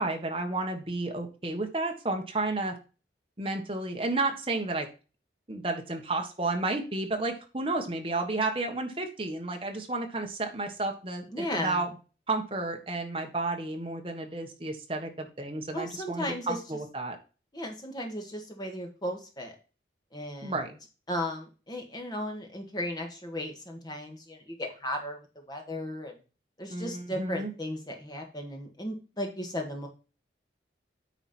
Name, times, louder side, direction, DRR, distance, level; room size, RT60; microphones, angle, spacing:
voice 1, 0.0-2.7 3.4-4.9 5.5-11.9 12.3-17.2 20.4-20.7 26.7-27.5, right 2 dB, 30° right, 3 dB, 1.4 m, -32 dB
voice 2, 11.3-11.8 15.7-16.6 17.5-19.6 20.1-20.7 21.1-25.2 25.5-26.2 26.6-29.9, left 1 dB, 25° left, 2 dB, 1.8 m, -35 dB
9.0 x 4.9 x 4.4 m, 0.34 s
head